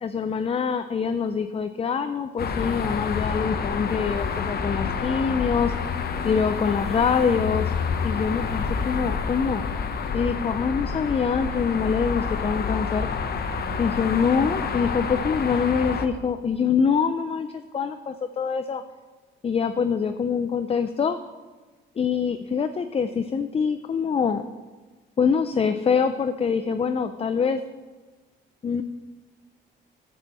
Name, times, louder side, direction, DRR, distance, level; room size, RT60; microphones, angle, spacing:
voice 1, 0.0-5.7 6.2-7.7 8.0-9.6 10.1-13.1 13.8-18.8 19.4-21.2 22.0-24.4 25.2-27.6 28.6-28.8, left 6 dB, 30° left, 9 dB, 0.5 m, -24 dB
sound 1, 2.4-16.1, left 5 dB, 50° left, 0.8 m, -28 dB
9.2 x 5.5 x 7.4 m, 1.3 s
cardioid pair, 90°, 20 cm